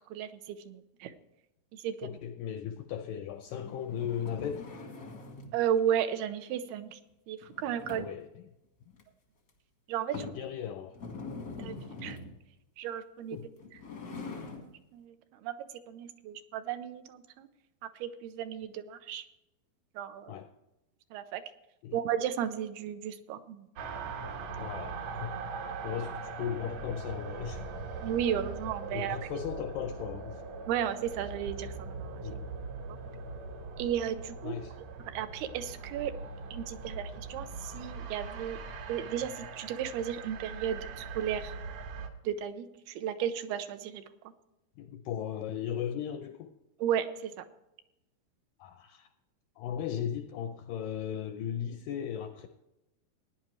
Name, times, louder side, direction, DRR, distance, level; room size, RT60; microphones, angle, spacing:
voice 1, 0.1-1.1 1.7-2.1 5.5-7.0 7.3-8.1 9.9-10.2 11.6-12.2 12.8-13.4 14.0-15.2 15.4-15.6 15.9-17.5 18.0-19.2 20.0-20.3 21.1-21.4 21.9-23.7 28.0-29.2 30.7-32.2 32.9-33.0 33.8-34.6 35.1-36.1 36.5-38.6 38.9-41.5 42.2-44.0 46.8-47.4, right 9 dB, 85° right, 10 dB, 2.7 m, -34 dB
voice 2, 2.0-4.7 7.9-8.4 10.1-11.0 13.3-13.5 20.3-20.5 21.8-22.0 24.5-25.4 25.8-27.6 28.9-30.4 32.2-32.5 34.4-34.8 44.8-46.5 48.6-49.1 49.6-52.5, left 9 dB, 85° left, 7 dB, 1.9 m, -37 dB
sound 1, 3.5-5.6 7.4-8.3 8.9-9.0 9.5-9.6 10.1-10.5 10.9-12.4 13.5-14.7, left 3 dB, 70° left, 0.8 m, -43 dB
sound 2, 23.8-42.1, right 4 dB, 65° right, 1.8 m, -41 dB
17.0 x 10.0 x 3.1 m, 0.92 s
omnidirectional pair, 4.5 m